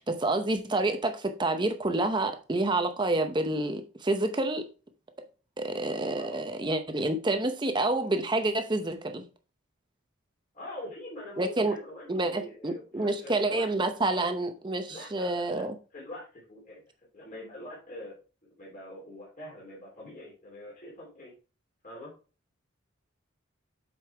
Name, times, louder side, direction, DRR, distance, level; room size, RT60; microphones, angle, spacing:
voice 1, 0.0-4.7 5.6-9.3 11.4-11.8 12.1-15.7, right 2 dB, 20° right, 0.7 m, -28 dB
voice 2, 10.5-13.7 14.9-15.6 15.9-16.8 17.1-18.2 18.6-21.3 21.8-22.1, left 1 dB, 40° left, 3.2 m, -44 dB
7.6 x 5.4 x 3.4 m
head